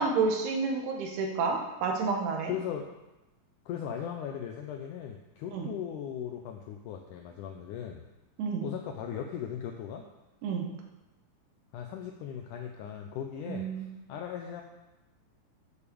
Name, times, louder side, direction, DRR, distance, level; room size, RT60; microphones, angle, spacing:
voice 1, 0.0-2.5 5.5-5.7 8.4-8.6 10.4-10.7 13.5-13.9, right 4 dB, 90° right, 2 dB, 3.3 m, -30 dB
voice 2, 2.5-2.9 3.6-8.0 8.6-10.1 11.7-14.6, left 9 dB, 80° left, 3 dB, 1.8 m, -38 dB
8.7 x 6.8 x 6.9 m, 1.0 s
omnidirectional pair, 4.4 m